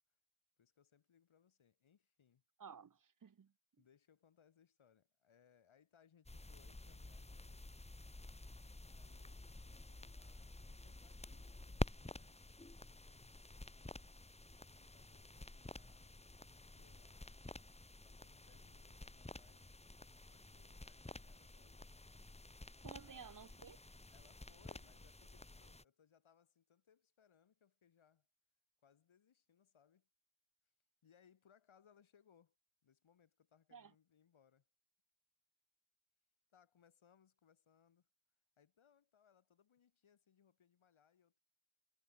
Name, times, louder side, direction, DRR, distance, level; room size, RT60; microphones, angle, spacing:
voice 1, 0.6-2.4 3.8-7.7 8.9-14.1 14.8-16.4 16.7-17.5 18.0-19.7 20.3-22.0 23.0-23.4 24.1-28.3 28.8-30.1 31.0-32.6 32.8-34.7 36.5-38.1 38.6-41.4, left 8 dB, 85° left, 6.9 m, -72 dB
voice 2, 2.6-3.5 22.8-23.8 33.7-33.9, right 6 dB, 45° right, 1.1 m, -55 dB
sound 1, 6.3-25.8, left 2 dB, 15° left, 1.7 m, -50 dB
wide cardioid pair, 150°, 47 cm